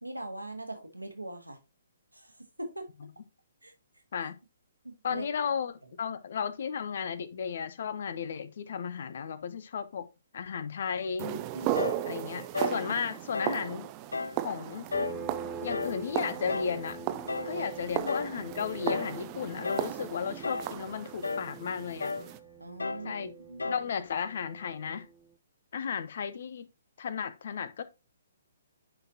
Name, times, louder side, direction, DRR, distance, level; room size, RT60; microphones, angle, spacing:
voice 1, 0.0-1.6 2.1-2.9 3.6-3.7 4.8-5.3 11.5-12.0 17.5-17.7 22.6-23.8, right 2 dB, 90° right, 1.6 m, -41 dB
voice 2, 5.0-10.1 10.3-11.4 12.0-13.9 14.4-14.9 15.6-17.0 17.4-22.1 23.0-23.3 23.7-25.1 25.7-26.7 27.0-27.8, left 7 dB, 50° left, 0.7 m, -34 dB
sound 1, 11.2-22.4, right 14 dB, 25° right, 0.5 m, -36 dB
sound 2, 11.7-12.0 12.5-12.8 13.3-13.6 14.1-14.4 14.9-15.2 15.7-16.0 16.5-16.8 17.3-17.6 18.1-18.4 18.9-19.2 19.6-20.0 20.4-20.8 21.2-21.5 22.0-22.3 22.8-23.1 23.6-23.9, left 4 dB, 75° left, 0.3 m, -33 dB
sound 3, 14.9-25.2, right 5 dB, 10° right, 1.0 m, -45 dB
9.9 x 4.1 x 2.8 m
figure-of-eight pair, 125°, 0 cm